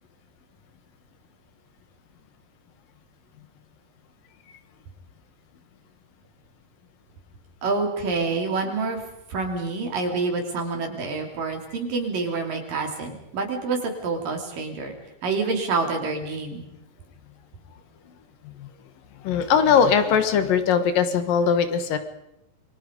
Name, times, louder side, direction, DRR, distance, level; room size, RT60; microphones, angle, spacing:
voice 1, 7.6-9.0 9.3-14.9 15.2-16.6, right 4 dB, 65° right, 3 dB, 4.8 m, -27 dB
voice 2, 19.2-22.0, left 7 dB, 70° left, 10 dB, 3.0 m, -20 dB
28.0 x 23.0 x 5.3 m, 0.84 s
omnidirectional pair, 4.3 m